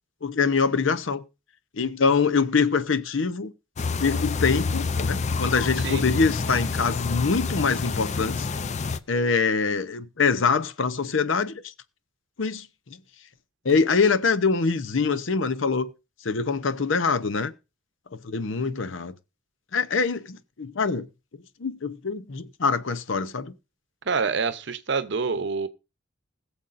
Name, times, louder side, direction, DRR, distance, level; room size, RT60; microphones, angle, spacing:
voice 1, 0.2-1.2 1.8-3.5 4.0-8.5 9.1-11.6 12.4-12.7 13.6-15.9 16.2-17.5 18.2-19.1 19.7-21.1 21.6-23.5, left 5 dB, 75° left, 0.7 m, -24 dB
sound 1, 3.8-9.0, left 4 dB, 35° left, 0.5 m, -28 dB
voice 2, 24.1-25.7, right 5 dB, 60° right, 0.7 m, -26 dB
20.5 x 7.1 x 2.6 m
head